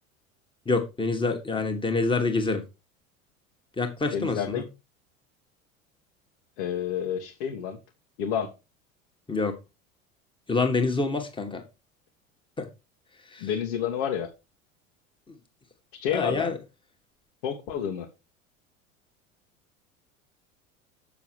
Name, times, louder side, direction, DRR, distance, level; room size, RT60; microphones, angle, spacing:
voice 1, 0.7-2.6 3.8-4.6 9.3-9.5 10.5-11.6 12.6-12.7 13.3-13.5 16.1-16.6, left 3 dB, 10° left, 2.2 m, -26 dB
voice 2, 4.1-4.7 6.6-7.8 8.2-8.5 13.4-14.3 16.0-16.6 17.4-18.1, left 8 dB, 55° left, 1.9 m, -29 dB
7.7 x 6.9 x 4.9 m
figure-of-eight pair, 75°, 40 cm